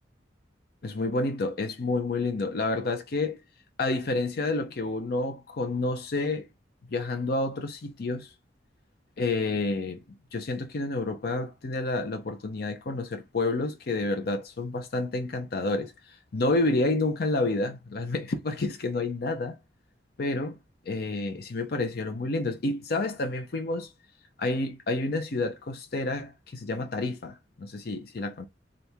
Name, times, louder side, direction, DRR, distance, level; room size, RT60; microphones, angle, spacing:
voice 1, 0.8-3.4 3.8-6.5 6.9-8.3 9.2-10.0 10.3-19.6 20.2-20.6 20.9-23.9 24.4-28.5, left 2 dB, 60° left, 0.6 m, -29 dB
3.4 x 2.5 x 4.4 m
head